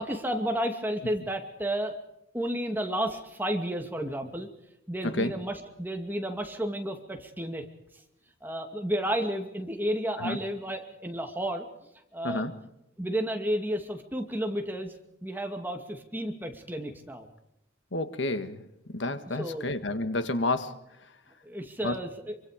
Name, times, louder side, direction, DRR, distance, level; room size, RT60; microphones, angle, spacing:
voice 1, 0.0-1.9 2.3-4.5 4.9-7.6 8.4-11.7 12.1-12.5 13.0-14.9 15.2-17.3 19.3-19.7 20.2-20.3 21.4-22.4, equal, 10° right, 4 dB, 2.5 m, -32 dB
voice 2, 17.9-18.6 18.9-20.8 21.8-21.9, left 2 dB, 75° left, 10 dB, 1.7 m, -30 dB
26.0 x 24.5 x 5.2 m, 0.82 s
head